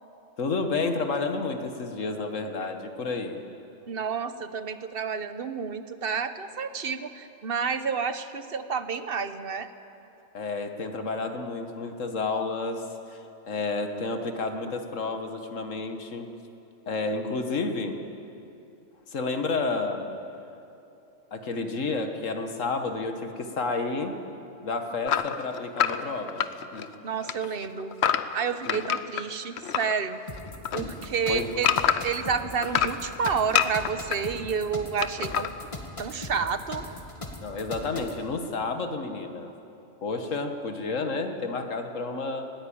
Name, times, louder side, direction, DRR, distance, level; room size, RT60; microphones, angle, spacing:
voice 1, 0.4-3.4 10.3-16.3 16.9-18.0 19.1-20.1 21.3-24.2 24.6-26.4 26.7-26.9 28.7-28.8 30.8-31.0 31.3-31.5 37.4-39.5 40.0-42.5, left 3 dB, 85° left, 6 dB, 1.8 m, -30 dB
voice 2, 3.9-9.7 27.0-28.0 28.3-30.2 30.7-31.7 32.0-35.5 36.0-36.8, right 6 dB, 50° right, 11 dB, 1.1 m, -30 dB
sound 1, 25.1-27.0 27.2-29.9 30.3-32.2 32.6-34.2 35.0-35.5, left 8 dB, 65° left, 1.0 m, -26 dB
sound 2, 30.3-38.2, left 2 dB, 25° left, 1.9 m, -39 dB
20.0 x 18.0 x 8.7 m, 2.8 s
omnidirectional pair, 1.3 m